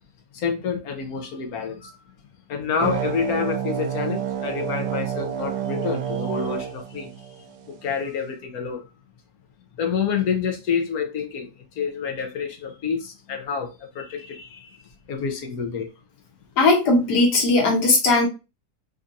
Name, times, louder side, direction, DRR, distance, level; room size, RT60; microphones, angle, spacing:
voice 1, 0.3-1.9 2.5-7.1 7.8-8.8 9.8-11.5 11.8-14.7 15.1-15.9, left 6 dB, 70° left, 1.2 m, -28 dB
sound 1, 2.8-7.8, right 9 dB, 80° right, 1.1 m, -29 dB
voice 2, 16.6-18.3, left 2 dB, 90° left, 1.6 m, -18 dB
3.5 x 2.7 x 2.5 m
omnidirectional pair, 1.7 m